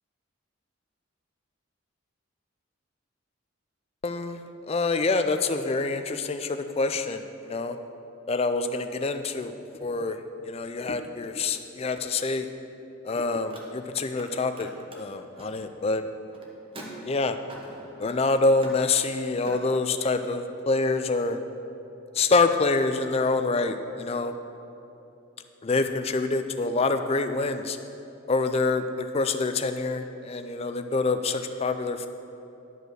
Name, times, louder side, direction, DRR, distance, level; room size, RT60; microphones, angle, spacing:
voice 1, 4.0-4.4 4.7-7.8 8.3-9.5 9.8-10.2 10.4-12.5 13.0-14.7 15.0-16.1 17.0-17.4 18.0-21.4 22.1-24.3 25.6-27.8 28.3-32.1, left 3 dB, 30° left, 8 dB, 0.4 m, -26 dB
Car, 13.5-14.3 14.5-19.6, right 1 dB, 25° right, 1.0 m, -46 dB
11.0 x 5.2 x 6.2 m, 2.9 s
head